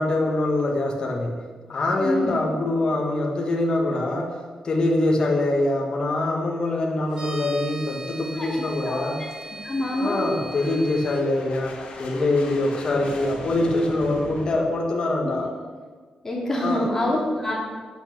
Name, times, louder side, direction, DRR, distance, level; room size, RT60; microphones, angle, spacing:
voice 1, 0.0-1.4 1.7-9.2 9.9-15.5 16.6-16.9, left 2 dB, 40° left, 0 dB, 1.6 m, -24 dB
voice 2, 2.0-2.3 8.3-8.9 9.6-10.2 16.2-17.5, left 1 dB, 20° left, -4 dB, 3.2 m, -26 dB
sound 1, 7.1-11.2, right 1 dB, 40° right, 3.7 m, -39 dB
sound 2, 8.2-14.5, left 2 dB, 75° left, 3.2 m, -40 dB
10.0 x 8.6 x 6.7 m, 1.5 s
wide cardioid pair, 160°, 2 cm